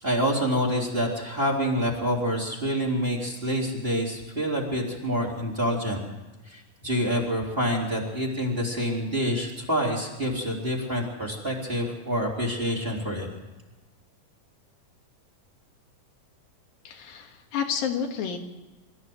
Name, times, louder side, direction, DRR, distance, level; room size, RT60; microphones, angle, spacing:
voice 1, 0.0-6.0 6.5-13.3, equal, 15° right, 0 dB, 3.6 m, -27 dB
voice 2, 16.9-18.4, left 7 dB, 85° left, 3 dB, 3.6 m, -30 dB
24.5 x 14.0 x 7.9 m, 1.2 s
omnidirectional pair, 4.0 m